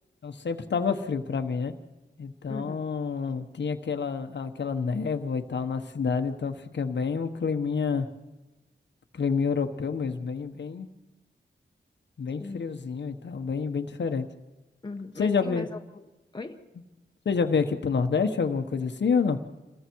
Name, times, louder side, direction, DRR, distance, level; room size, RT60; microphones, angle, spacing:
voice 1, 0.2-1.7 2.2-8.1 9.1-10.9 12.2-14.3 15.2-15.7 17.2-19.4, left 5 dB, 70° left, 6 dB, 1.3 m, -28 dB
voice 2, 2.5-2.8 12.4-12.7 14.8-16.6, left 3 dB, 25° left, 4 dB, 1.3 m, -39 dB
28.0 x 21.5 x 4.7 m, 1.1 s
wide cardioid pair, 130°, 19 cm